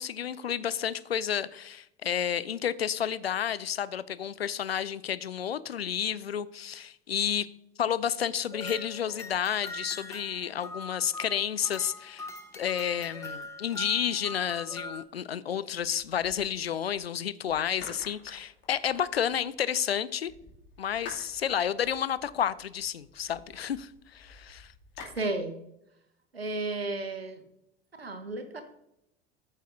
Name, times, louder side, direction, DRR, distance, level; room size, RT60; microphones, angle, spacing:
voice 1, 0.0-7.5 7.8-12.3 12.5-20.3 20.8-24.7, left 9 dB, 85° left, 0.5 m, -31 dB
sound 1, 8.5-15.0, left 1 dB, 10° left, 1.2 m, -42 dB
sound 2, 15.8-17.0 17.5-19.6 20.3-25.2, left 4 dB, 40° left, 2.5 m, -50 dB
voice 2, 25.2-25.6 26.3-27.4 28.0-28.6, right 2 dB, 85° right, 1.0 m, -33 dB
13.5 x 6.4 x 2.6 m
figure-of-eight pair, 70°, 30 cm